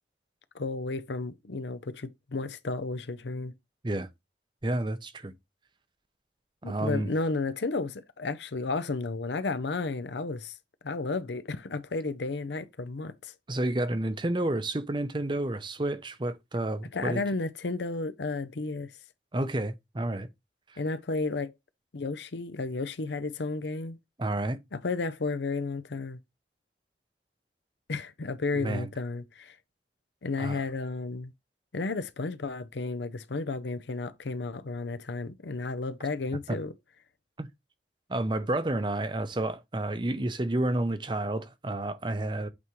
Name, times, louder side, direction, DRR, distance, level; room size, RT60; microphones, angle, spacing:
voice 1, 0.5-3.5 6.6-10.6 10.8-13.3 16.9-18.9 20.8-21.5 21.9-24.0 24.7-26.2 27.9-29.6 30.2-31.3 31.7-36.7, left 3 dB, 80° left, 0.7 m, -32 dB
voice 2, 4.6-5.3 6.6-7.1 13.5-17.2 19.3-20.3 24.2-24.6 28.5-28.9 30.4-30.6 36.5-36.6 37.4-37.5 38.1-42.5, right 1 dB, 25° right, 0.6 m, -30 dB
8.4 x 3.6 x 3.1 m
head